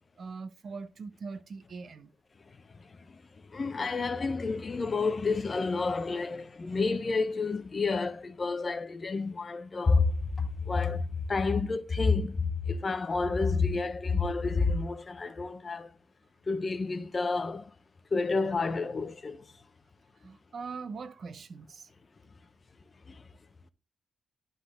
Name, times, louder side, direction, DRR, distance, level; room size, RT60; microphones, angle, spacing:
voice 1, 0.2-2.1 20.2-21.9, right 4 dB, 50° right, 0.9 m, -41 dB
voice 2, 2.7-3.2 3.5-15.9 16.5-17.7 18.1-19.5 23.1-23.2, left 4 dB, 30° left, 0.8 m, -29 dB
11.5 x 3.9 x 3.8 m
cardioid pair, 120°, 0 cm